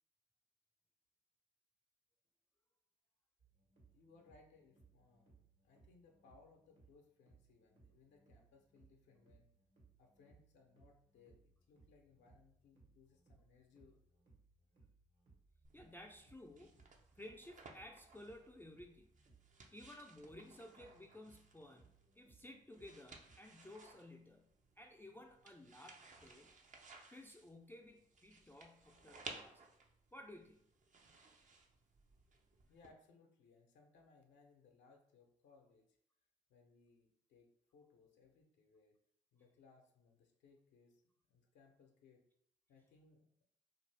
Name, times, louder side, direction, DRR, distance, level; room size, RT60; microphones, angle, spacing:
sound 1, 3.4-23.4, right 4 dB, 65° right, 1.3 m, -69 dB
voice 1, 3.9-9.5 10.0-14.0 32.7-36.0 36.5-39.0 39.3-41.0 41.3-42.2 42.7-43.3, left 4 dB, 70° left, 2 dB, 0.6 m, -67 dB
sound 2, 15.6-32.9, right 3 dB, 40° right, 0.6 m, -59 dB
voice 2, 15.7-16.8 17.1-19.1 19.7-26.5 27.1-29.7 30.1-30.6, left 1 dB, 10° left, 2 dB, 0.4 m, -56 dB
2.5 x 2.5 x 3.2 m, 0.70 s
hypercardioid pair, 45°, 19 cm